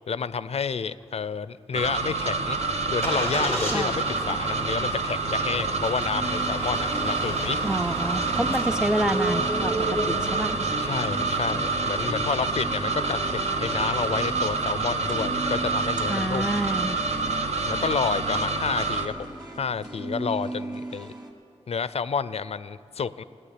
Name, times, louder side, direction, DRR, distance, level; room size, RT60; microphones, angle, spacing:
voice 1, 0.1-2.6 2.9-7.6 10.8-16.5 17.6-19.1 19.6-21.1 21.7-23.2, left 6 dB, 65° left, 16 dB, 0.4 m, -30 dB
sound 1, 1.7-19.1, right 3 dB, 75° right, 0.9 m, -27 dB
Engine starting, 1.8-17.1, right 1 dB, 90° right, 3.9 m, -36 dB
sound 2, 2.6-21.3, right 1 dB, 35° right, 2.3 m, -39 dB
voice 2, 7.6-10.6 16.1-17.0, right 1 dB, 5° right, 9 dB, 0.4 m, -28 dB
14.5 x 9.2 x 9.9 m, 2.6 s
cardioid pair, 60°, 11 cm